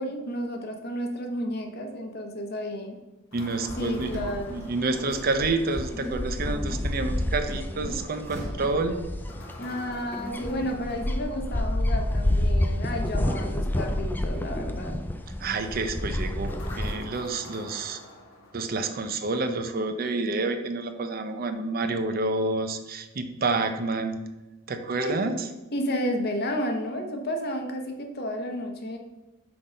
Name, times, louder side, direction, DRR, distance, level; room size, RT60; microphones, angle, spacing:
voice 1, 0.0-3.0 3.8-4.7 9.6-15.0 25.0-25.2 25.7-29.0, equal, 50° left, 4 dB, 0.9 m, -32 dB
sound 1, 3.3-5.7 9.3-11.8 16.5-19.1, left 1 dB, 80° left, 1.3 m, -46 dB
voice 2, 3.3-9.0 15.4-16.5 16.8-18.0 18.5-24.2 24.7-25.5, right 3 dB, 45° right, 8 dB, 0.6 m, -29 dB
sound 2, 3.7-16.9, left 1 dB, 10° left, 0.3 m, -29 dB
sound 3, 4.0-6.6 7.9-9.7, equal, 15° right, 1.7 m, -45 dB
6.1 x 3.9 x 5.0 m, 1.0 s
head